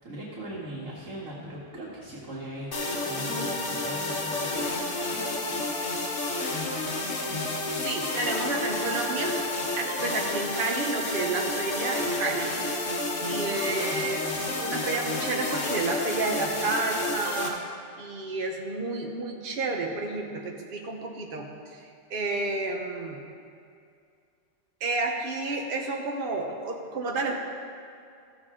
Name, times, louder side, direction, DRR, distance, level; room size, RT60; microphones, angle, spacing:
voice 1, 0.0-2.7 3.0-4.7, right 1 dB, 80° right, -7 dB, 2.0 m, -39 dB
sound 1, 2.7-17.5, left 2 dB, 70° left, 1.6 m, -30 dB
voice 2, 7.8-9.3 9.8-12.5 13.2-14.2 14.6-17.6 18.0-21.5 21.8-23.2 24.8-27.4, right 3 dB, 45° right, 1 dB, 1.1 m, -30 dB
15.0 x 7.2 x 3.7 m, 2.4 s
omnidirectional pair, 1.3 m